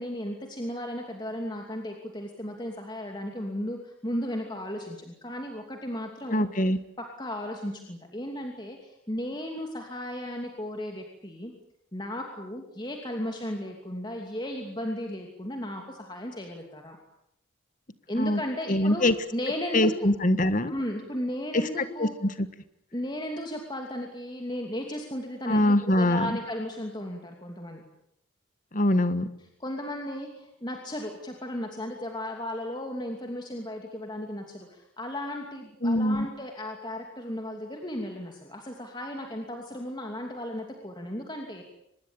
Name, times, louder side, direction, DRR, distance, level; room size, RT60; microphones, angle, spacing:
voice 1, 0.0-6.5 7.0-11.5 11.9-17.0 18.1-19.0 19.3-20.1 20.7-22.2 22.9-27.8 29.6-41.6, left 1 dB, 20° left, 2 dB, 2.7 m, -35 dB
voice 2, 6.3-6.8 18.1-18.4 18.7-19.1 19.7-20.7 21.5-22.5 25.5-26.3 28.7-29.3 35.8-36.3, left 1 dB, 40° left, 12 dB, 1.5 m, -23 dB
24.5 x 21.0 x 8.8 m, 0.78 s
head